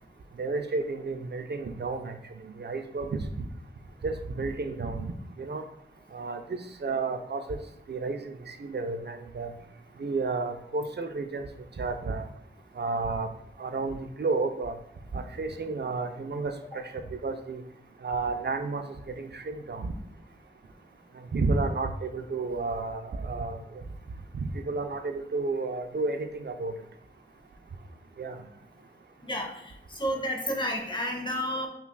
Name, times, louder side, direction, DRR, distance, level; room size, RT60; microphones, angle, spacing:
voice 1, 0.4-2.2 2.6-3.5 4.0-5.0 5.4-5.6 6.1-7.6 7.9-9.5 10.0-11.5 11.8-12.2 12.8-13.3 13.6-14.8 15.1-17.6 18.0-18.8 19.2-19.9 21.3-23.6 24.3-26.7 28.2-28.4, right 3 dB, 55° right, 7 dB, 0.4 m, -31 dB
voice 2, 29.2-31.7, equal, 25° left, 2 dB, 0.7 m, -31 dB
5.6 x 2.3 x 2.3 m, 0.76 s
wide cardioid pair, 40°, 20 cm